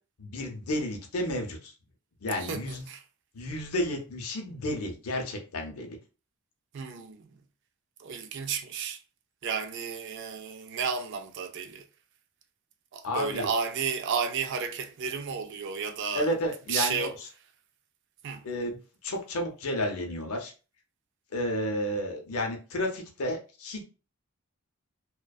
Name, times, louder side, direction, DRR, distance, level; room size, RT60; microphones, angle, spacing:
voice 1, 0.2-1.7 2.2-2.9 3.3-6.0 13.0-13.5 16.1-17.1 18.4-18.8 19.0-20.5 21.3-23.8, left 1 dB, 75° left, 0.6 m, -31 dB
voice 2, 2.4-3.0 6.7-7.4 8.0-9.0 9.4-11.9 12.9-16.3 16.7-17.2 18.2-18.5, right 6 dB, 50° right, 0.3 m, -32 dB
2.5 x 2.2 x 2.3 m
head